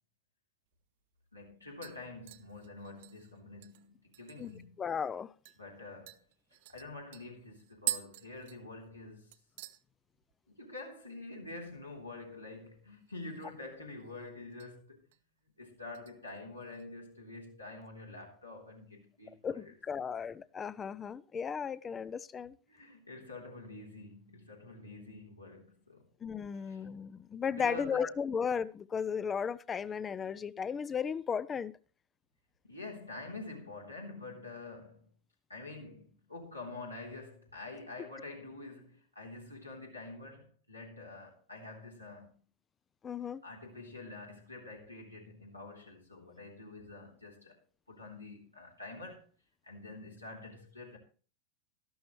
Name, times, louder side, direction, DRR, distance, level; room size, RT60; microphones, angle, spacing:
sound 1, 0.7-0.8 1.2-1.5 1.8-4.6 5.0-5.1 5.4-5.6 6.1-9.1 9.3-9.8 10.2-10.6 10.8-10.9 13.0-13.7 14.0-14.7 15.1-15.4 15.9-16.9 17.2-17.3, right 15 dB, 50° right, 0.7 m, -44 dB
voice 1, 1.3-4.8 5.6-6.2 6.7-9.4 10.5-15.1 15.4-19.7 20.1-20.2 22.7-26.1 26.5-26.9 27.5-28.1 32.6-35.1 35.5-42.4 43.4-47.6 47.9-49.3 49.6-51.0, left 2 dB, 85° left, 3.3 m, -47 dB
voice 2, 4.8-5.3 19.4-22.6 26.2-31.7 43.0-43.4, left 6 dB, 20° left, 0.4 m, -35 dB
13.0 x 12.0 x 3.1 m
figure-of-eight pair, 90°, 0 cm